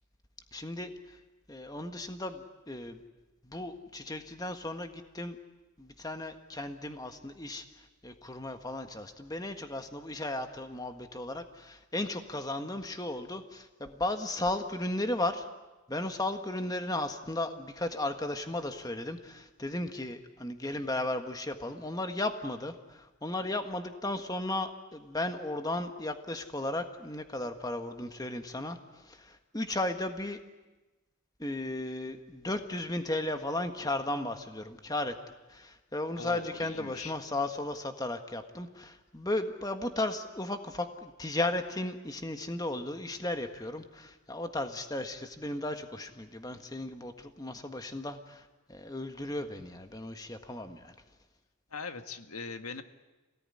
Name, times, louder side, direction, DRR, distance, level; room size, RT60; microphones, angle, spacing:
voice 1, 0.5-1.2 1.5-3.0 3.4-5.4 5.8-15.5 15.9-30.4 31.4-35.1 35.5-50.9, left 2 dB, 15° left, 7 dB, 1.5 m, -35 dB
voice 2, 36.2-37.1 51.7-52.8, left 4 dB, 90° left, 8 dB, 1.7 m, -41 dB
27.5 x 18.5 x 9.9 m, 1.1 s
head